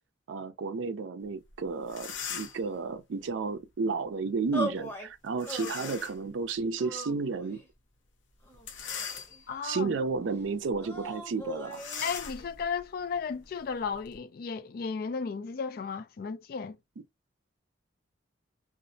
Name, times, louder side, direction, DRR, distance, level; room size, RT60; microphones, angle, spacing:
voice 1, 0.3-7.6 9.6-11.9, right 4 dB, 80° right, 0.4 m, -32 dB
sound 1, 1.5-1.6 1.8-2.7 5.4-6.2 6.8-6.9 8.5-9.7 10.2-10.4 10.7-10.8 11.7-14.2, left 7 dB, 75° left, 0.7 m, -40 dB
sound 2, 4.5-5.1 5.5-6.1 6.8-7.7 8.4-9.4 10.8-12.2, right 1 dB, 15° left, 0.7 m, -39 dB
voice 2, 9.5-10.0 12.0-16.8, left 5 dB, 50° left, 0.3 m, -34 dB
2.5 x 2.0 x 2.6 m
head